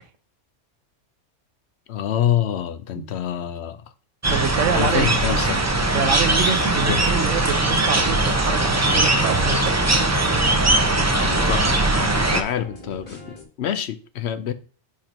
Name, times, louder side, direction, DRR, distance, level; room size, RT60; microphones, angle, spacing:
voice 1, 1.9-3.8 4.7-5.6 6.9-7.0 11.2-13.2 13.6-14.5, left 10 dB, 65° left, 0.8 m, -26 dB
sound 1, 4.2-12.4, right 2 dB, 20° right, 0.5 m, -20 dB
voice 2, 4.3-5.1 5.9-10.0, right 7 dB, 75° right, 1.1 m, -26 dB
sound 2, 6.3-13.4, left 1 dB, 45° left, 1.9 m, -41 dB
4.9 x 4.5 x 5.1 m
omnidirectional pair, 1.3 m